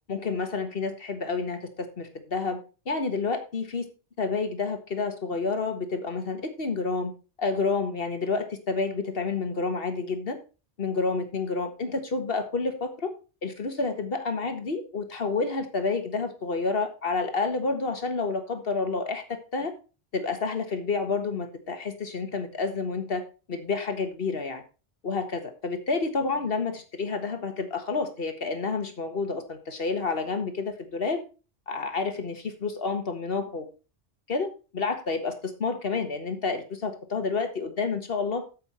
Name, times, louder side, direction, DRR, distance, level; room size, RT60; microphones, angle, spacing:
voice 1, 0.1-2.6 2.8-3.9 4.2-7.1 7.4-10.4 10.8-13.1 13.4-19.2 19.5-19.7 20.1-24.6 25.0-31.2 31.7-33.7 34.3-38.4, left 4 dB, 60° left, 7 dB, 1.7 m, -29 dB
8.7 x 7.7 x 4.3 m, 0.34 s
omnidirectional pair, 1.1 m